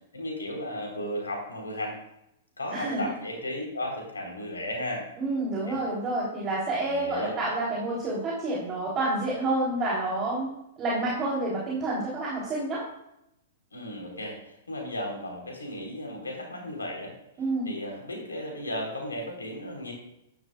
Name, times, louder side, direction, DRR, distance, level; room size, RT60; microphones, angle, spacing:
voice 1, 0.1-2.0 2.6-5.0 5.7-5.8 6.9-7.3 13.7-17.1 17.7-19.9, left 1 dB, 85° left, 0 dB, 3.9 m, -35 dB
voice 2, 2.7-3.1 5.2-10.5 10.8-12.8 17.4-17.7, right 2 dB, 25° right, -5 dB, 3.5 m, -29 dB
12.0 x 11.0 x 2.4 m, 0.82 s
figure-of-eight pair, 110°, 0 cm